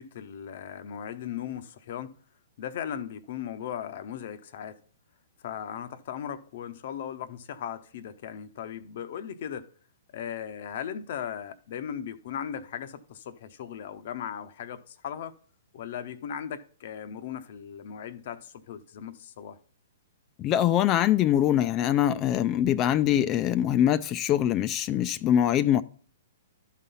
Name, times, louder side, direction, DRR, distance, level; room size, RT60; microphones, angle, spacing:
voice 1, 0.0-2.2 2.6-4.8 5.4-9.7 10.1-15.4 15.7-19.6, left 9 dB, 55° left, 0.8 m, -37 dB
voice 2, 20.4-25.8, left 11 dB, 30° left, 0.4 m, -23 dB
12.0 x 4.2 x 5.4 m
hypercardioid pair, 120°, 0 cm